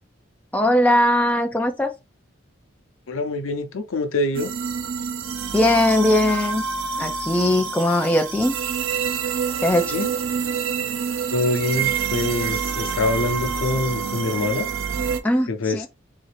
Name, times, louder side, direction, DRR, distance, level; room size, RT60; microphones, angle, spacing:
voice 1, 0.5-1.9 5.5-6.6 7.0-8.6 9.6-10.0 15.2-15.9, left 1 dB, 5° left, 0.4 m, -20 dB
voice 2, 3.1-4.5 9.9-10.1 11.3-14.7 15.5-15.9, left 2 dB, 90° left, 0.6 m, -25 dB
sound 1, 4.3-15.2, right 6 dB, 75° right, 0.5 m, -27 dB
3.8 x 2.5 x 3.3 m
head